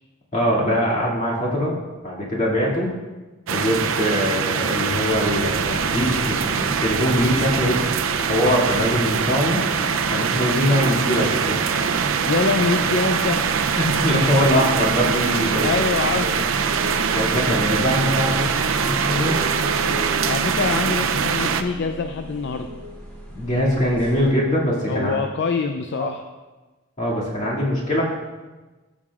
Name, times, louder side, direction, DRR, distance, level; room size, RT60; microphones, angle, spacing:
voice 1, 0.3-1.8 2.0-2.9 3.5-7.8 8.3-9.6 10.1-11.6 13.8-15.7 16.2-16.4 17.1-19.4 23.3-25.1 26.0-26.1 27.0-28.0, equal, 40° left, -6 dB, 2.4 m, -22 dB
sound 1, 3.5-21.6, right 6 dB, 85° right, 0.5 m, -23 dB
sound 2, 5.3-24.3, equal, 10° left, 2.0 m, -39 dB
voice 2, 12.3-13.4 15.6-16.4 20.2-22.7 24.9-26.2, left 4 dB, 60° left, 6 dB, 0.4 m, -24 dB
Wind instrument woodwind instrument, 16.6-23.2, right 2 dB, 40° right, 1.5 m, -35 dB
14.0 x 7.2 x 2.4 m, 1.2 s
head